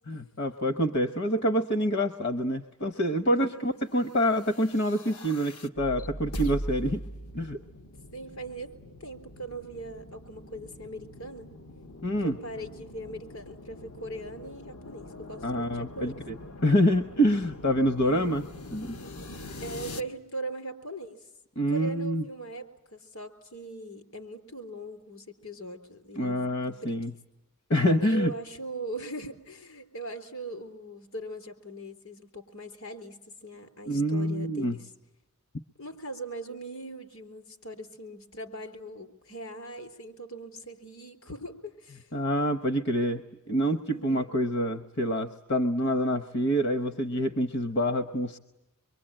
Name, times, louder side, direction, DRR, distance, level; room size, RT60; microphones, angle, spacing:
voice 1, 0.1-7.0 7.3-7.6 12.0-12.4 15.4-16.4 16.6-18.4 18.7-19.0 21.6-22.2 26.2-27.1 27.7-28.3 33.9-34.8 42.1-48.4, equal, 50° left, 10 dB, 0.9 m, -26 dB
voice 2, 3.3-3.8 8.1-8.7 9.0-11.5 12.0-16.1 18.0-18.4 19.6-21.3 21.7-27.0 28.0-34.9 35.8-42.1 43.9-44.4, right 2 dB, 75° left, 7 dB, 3.8 m, -40 dB
sound 1, 4.2-20.0, left 1 dB, 90° left, 1.4 m, -42 dB
26.0 x 23.5 x 8.9 m, 0.98 s
head